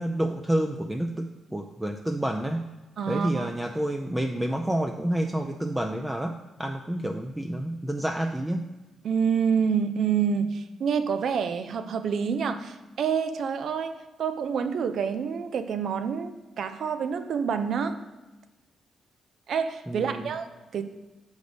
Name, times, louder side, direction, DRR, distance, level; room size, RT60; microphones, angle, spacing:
voice 1, 0.0-2.6 3.1-8.7 19.9-20.3, right 1 dB, 10° right, 3 dB, 0.5 m, -29 dB
voice 2, 3.0-3.5 9.0-18.0 19.5-20.8, right 6 dB, 70° right, 10 dB, 0.5 m, -27 dB
6.4 x 5.2 x 5.1 m, 1.1 s
cardioid pair, 75°, 0 cm